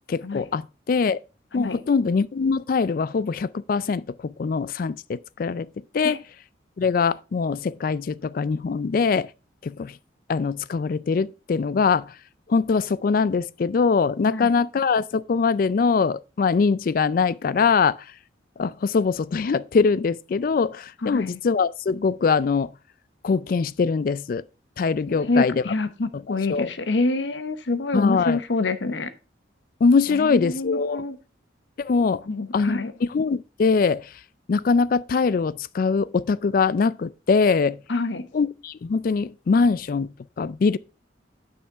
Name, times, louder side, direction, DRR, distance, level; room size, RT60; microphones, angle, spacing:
voice 1, 0.1-1.2 1.5-5.7 5.9-6.2 6.8-9.3 9.6-10.0 10.3-12.2 12.5-18.1 18.6-22.7 23.2-24.4 24.8-25.6 26.1-26.2 26.5-26.7 27.9-28.4 29.8-31.0 31.8-32.2 32.5-34.2 34.5-37.8 38.3-40.8, left 5 dB, 50° left, 0.3 m, -22 dB
voice 2, 21.0-21.4 25.1-29.1 30.1-31.2 32.3-32.9 37.9-38.3, left 3 dB, 70° left, 0.8 m, -26 dB
9.4 x 5.7 x 3.5 m
head